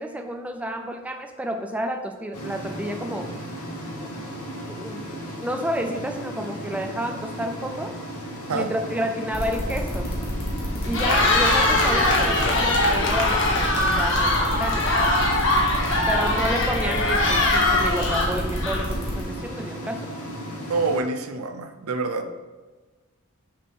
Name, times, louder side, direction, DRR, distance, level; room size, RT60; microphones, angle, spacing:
voice 1, 0.0-3.3 4.0-4.1 4.7-7.9 8.5-10.1 10.8-14.9 16.1-20.1, equal, 5° right, 4 dB, 0.4 m, -30 dB
sound 1, 2.3-21.0, equal, 85° left, 1.5 m, -35 dB
sound 2, 9.3-19.2, equal, 25° left, 1.6 m, -30 dB
Cheering, 10.8-19.1, left 2 dB, 60° left, 1.4 m, -22 dB
voice 2, 20.7-22.3, right 3 dB, 85° right, 7 dB, 0.7 m, -26 dB
6.4 x 3.8 x 5.5 m, 1.3 s
head